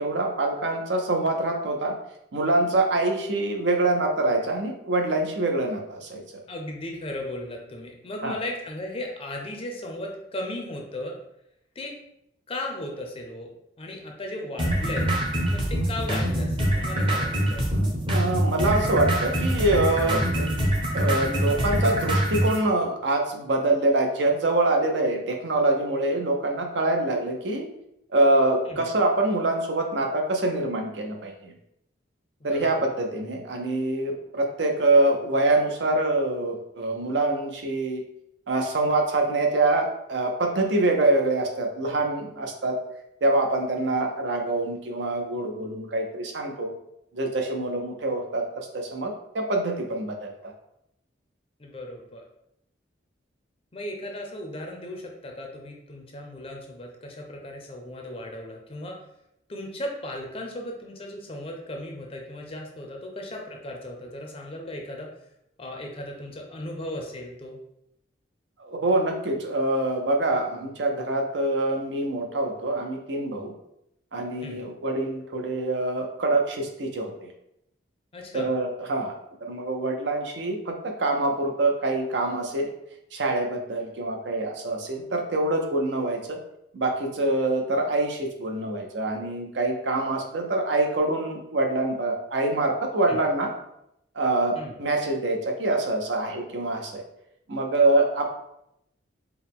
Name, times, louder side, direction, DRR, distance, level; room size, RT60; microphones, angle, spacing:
voice 1, 0.0-2.0 2.3-6.2 8.2-8.4 18.1-20.6 20.9-27.7 28.1-31.5 32.4-38.0 38.5-42.8 43.2-46.7 47.1-50.5 68.6-73.5 74.1-77.3 78.3-82.7 83.1-86.4 86.7-93.5 94.1-97.0 97.5-98.3, right 2 dB, 65° right, 3 dB, 0.6 m, -25 dB
voice 2, 6.5-11.2 11.8-11.9 12.5-13.5 13.8-15.1 15.5-17.6 28.7-28.9 32.4-32.9 51.6-52.2 53.7-59.0 59.5-65.1 65.6-67.6 74.4-74.7 78.1-78.5 93.1-93.2 94.5-94.7, left 1 dB, 30° left, 1 dB, 0.5 m, -36 dB
sound 1, 14.6-22.6, right 1 dB, 25° right, 0.8 m, -24 dB
4.5 x 2.1 x 3.5 m, 0.80 s
head